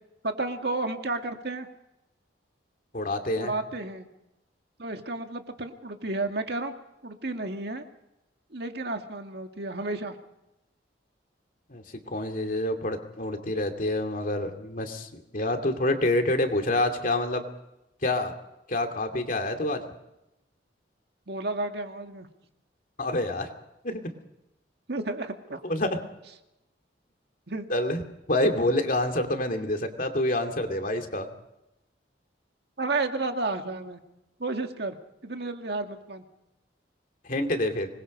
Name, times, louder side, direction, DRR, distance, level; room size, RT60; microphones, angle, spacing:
voice 1, 0.2-1.7 3.4-4.1 4.8-6.7 7.0-7.8 8.5-10.1 21.3-22.3 24.9-25.6 27.5-27.7 32.8-34.0 34.4-35.0 35.2-36.2, right 2 dB, 60° right, 5 dB, 2.0 m, -32 dB
voice 2, 2.9-3.5 11.7-11.8 12.1-17.4 18.0-18.3 18.7-19.8 23.0-23.5 23.8-24.0 25.6-26.0 27.7-28.0 28.3-31.3 37.3-37.9, left 1 dB, 50° left, 4 dB, 2.6 m, -27 dB
26.0 x 21.0 x 5.4 m, 0.90 s
head